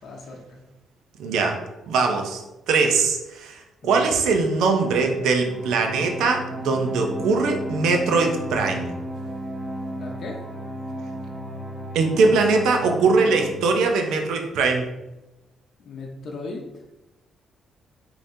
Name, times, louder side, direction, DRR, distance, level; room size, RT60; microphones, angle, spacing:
voice 1, 0.0-0.6 3.8-4.1 9.8-10.4 15.8-16.8, left 3 dB, 60° left, 0 dB, 0.8 m, -37 dB
voice 2, 1.2-1.6 1.9-2.4 2.7-8.9 11.9-14.9, right 4 dB, 85° right, 3 dB, 0.6 m, -21 dB
sound 1, 4.4-13.5, equal, 15° right, 1.2 m, -34 dB
5.0 x 2.9 x 2.7 m, 0.98 s
cardioid pair, 90°, 0 cm